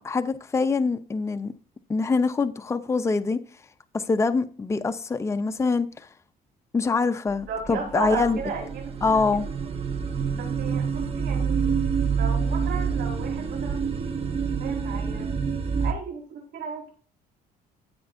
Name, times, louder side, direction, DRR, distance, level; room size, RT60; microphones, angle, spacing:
voice 1, 0.0-1.5 1.9-3.4 3.9-6.1 6.7-8.4 9.0-9.5, left 4 dB, 15° left, 0.6 m, -24 dB
sound 1, 7.3-15.9, right 6 dB, 35° right, 1.1 m, -27 dB
voice 2, 7.5-9.7 10.3-11.7 12.1-14.1 14.6-15.3 15.8-16.9, right 6 dB, 70° right, 4.9 m, -35 dB
14.0 x 7.8 x 2.6 m
cardioid pair, 110°, 17 cm